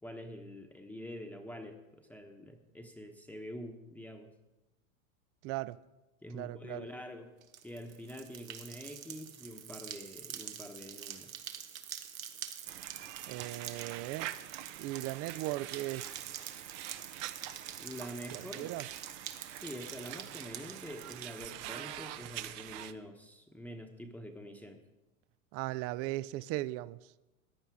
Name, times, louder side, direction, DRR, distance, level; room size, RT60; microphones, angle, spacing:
voice 1, 0.0-4.3 6.2-7.3 7.6-11.3 17.8-18.8 19.5-24.8, equal, 5° left, 1.0 m, -46 dB
voice 2, 5.4-5.8 6.3-6.9 13.3-14.3 14.8-16.3 18.3-18.9 25.5-27.1, right 17 dB, 35° right, 0.4 m, -38 dB
sound 1, 7.4-21.6, right 9 dB, 80° right, 1.3 m, -46 dB
sound 2, 12.7-22.9, right 14 dB, 55° right, 0.8 m, -45 dB
14.5 x 10.0 x 4.8 m
hypercardioid pair, 95°, 41 cm